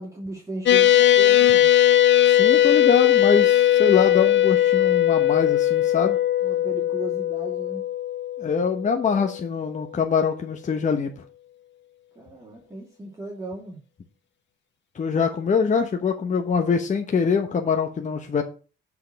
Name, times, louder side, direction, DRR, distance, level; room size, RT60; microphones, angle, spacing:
voice 1, 0.0-1.7 6.4-7.9 12.1-13.8, right 2 dB, 15° right, -3 dB, 2.6 m, -36 dB
sound 1, 0.7-9.3, left 12 dB, 65° left, 0.8 m, -19 dB
voice 2, 2.2-6.2 8.4-11.1 14.9-18.4, left 6 dB, 40° left, 4 dB, 1.1 m, -24 dB
7.8 x 4.7 x 6.3 m, 0.36 s
cardioid pair, 90°, 20 cm